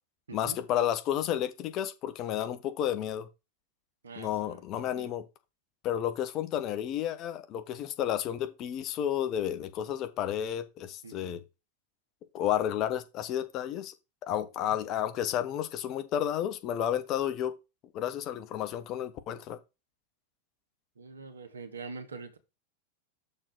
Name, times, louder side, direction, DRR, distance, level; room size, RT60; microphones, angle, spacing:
voice 1, 0.3-3.3 4.2-5.3 5.8-11.4 12.3-13.9 14.2-17.6 17.9-19.6, left 10 dB, 35° left, 1.0 m, -31 dB
voice 2, 4.0-5.1 11.0-11.4 14.6-14.8 21.0-22.4, right 4 dB, 70° right, 1.6 m, -44 dB
6.7 x 3.9 x 6.1 m
figure-of-eight pair, 90°, 0 cm